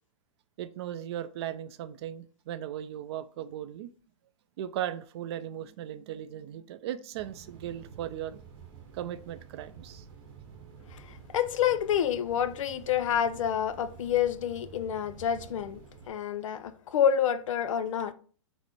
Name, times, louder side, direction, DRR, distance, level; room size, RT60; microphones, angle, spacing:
voice 1, 0.6-3.9 4.6-8.4 8.9-10.0, right 11 dB, 55° right, 0.4 m, -37 dB
sound 1, 7.1-16.1, right 7 dB, 35° right, 0.9 m, -50 dB
voice 2, 10.9-15.8 16.1-18.1, left 9 dB, 75° left, 0.4 m, -28 dB
4.0 x 2.0 x 4.4 m
hypercardioid pair, 125°, 17 cm